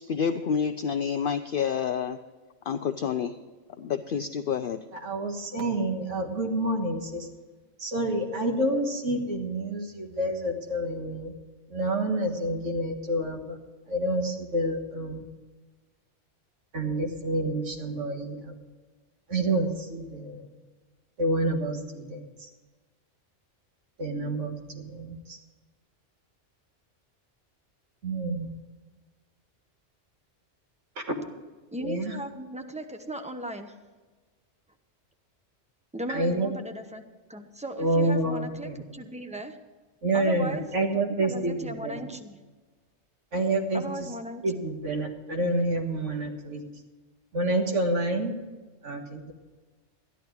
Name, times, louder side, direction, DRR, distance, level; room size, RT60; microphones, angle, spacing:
voice 1, 0.1-2.2 2.7-3.4 3.8-4.8, left 7 dB, 60° left, 8 dB, 0.6 m, -28 dB
voice 2, 5.0-7.3 7.8-11.3 11.7-13.6 13.9-15.3 16.7-18.5 19.3-20.5 21.2-22.5 24.0-25.4 28.0-28.5 31.1-31.2 31.8-32.2 36.1-36.6 37.8-38.8 40.0-42.0 43.3-43.8 44.4-46.6 47.3-48.3 48.8-49.3, right 1 dB, 80° right, 3 dB, 1.9 m, -28 dB
voice 3, 31.7-33.8 35.9-37.0 37.3-39.6 40.1-40.7 40.9-42.4 43.7-44.6, right 1 dB, 5° right, 6 dB, 0.8 m, -37 dB
13.5 x 11.0 x 4.6 m, 1.3 s
omnidirectional pair, 1.2 m